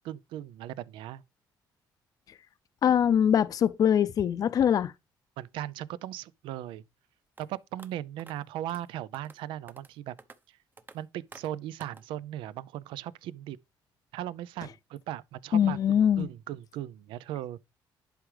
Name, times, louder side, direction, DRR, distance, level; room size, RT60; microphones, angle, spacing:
voice 1, 0.0-1.2 5.4-6.8 7.4-10.2 10.9-13.6 14.1-17.6, right 12 dB, 90° right, 0.4 m, -38 dB
voice 2, 2.8-4.9 15.5-16.3, left 9 dB, 45° left, 0.4 m, -23 dB
sound 1, 7.4-7.5 7.8-7.9 8.2-8.3 8.7-8.8 9.1-9.4 9.7-9.9 10.2-10.4 10.8-11.0 11.3-11.5 11.8-12.0, right 3 dB, 25° right, 0.8 m, -49 dB
11.0 x 4.9 x 3.3 m
cardioid pair, 115°, 8 cm